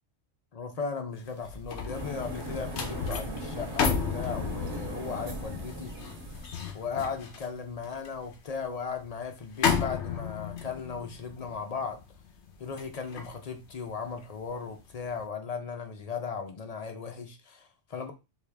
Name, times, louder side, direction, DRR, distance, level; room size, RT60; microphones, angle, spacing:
voice 1, 0.5-5.9 6.7-12.0 12.6-18.1, left 5 dB, 50° left, 0.5 m, -36 dB
sound 1, 1.2-14.5 14.9-15.2, left 6 dB, 65° left, 1.0 m, -34 dB
sound 2, 1.9-6.7, equal, 65° right, 1.6 m, -38 dB
4.6 x 2.3 x 3.3 m
omnidirectional pair, 1.3 m